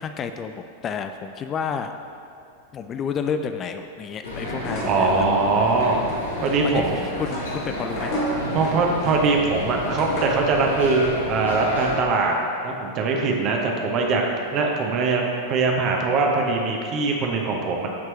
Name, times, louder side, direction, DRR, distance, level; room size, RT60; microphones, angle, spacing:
voice 1, 0.0-1.9 2.7-5.4 6.6-8.2, left 6 dB, 25° left, 7 dB, 0.3 m, -30 dB
sound 1, 4.2-12.0, left 1 dB, 75° left, 1.3 m, -31 dB
sound 2, 4.6-10.5, equal, 45° left, 1.9 m, -33 dB
voice 2, 4.8-6.0 6.4-7.0 8.5-12.3 12.6-14.2 14.5-17.9, right 3 dB, 35° right, 1 dB, 0.9 m, -22 dB
12.0 x 4.6 x 3.2 m, 2.4 s
figure-of-eight pair, 90°, 0 cm